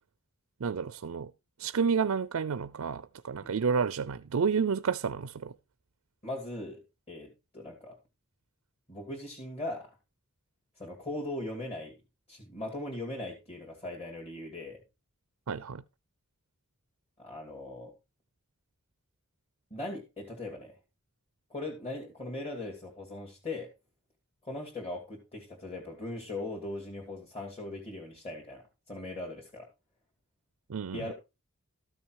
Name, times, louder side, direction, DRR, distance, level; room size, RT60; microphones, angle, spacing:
voice 1, 0.6-1.3 1.6-5.5 15.5-15.8 30.7-31.1, right 6 dB, 80° right, 0.5 m, -30 dB
voice 2, 6.2-6.8 7.1-8.0 8.9-10.0 10.8-12.0 12.3-14.8 17.2-17.9 19.7-20.8 21.5-23.7 24.4-29.7 30.9-31.1, left 2 dB, 30° left, 2.4 m, -39 dB
13.0 x 6.3 x 4.6 m
head